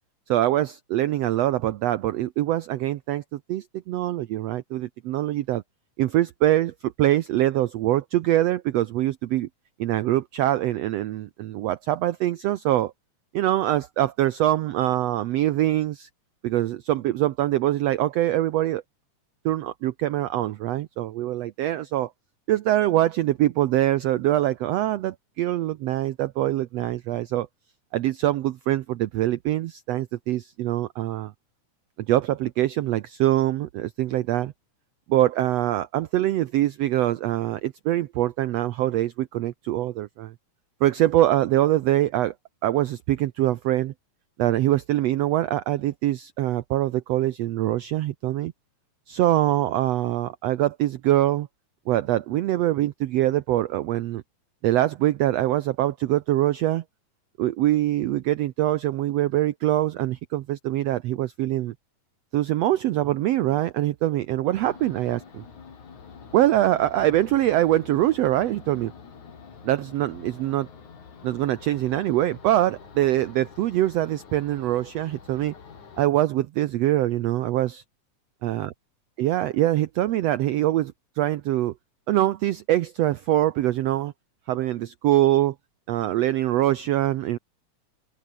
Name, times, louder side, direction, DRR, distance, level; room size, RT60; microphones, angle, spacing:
voice 1, 0.3-5.6 6.0-9.5 9.8-12.9 13.3-16.1 16.4-18.8 19.5-22.1 22.5-27.5 27.9-31.3 32.1-34.5 35.1-40.3 40.8-42.3 42.6-43.9 44.4-48.5 49.1-51.5 51.9-54.2 54.6-56.8 57.4-61.7 62.3-65.4 66.3-68.9 69.6-70.7 71.2-75.5 76.0-77.8 78.4-78.7 79.2-81.7 82.1-84.1 84.5-85.6 85.9-87.4, right 14 dB, 70° right, 1.6 m, -24 dB
sound 1, 64.6-76.0, left 6 dB, 70° left, 5.1 m, -46 dB
open air
omnidirectional pair, 3.6 m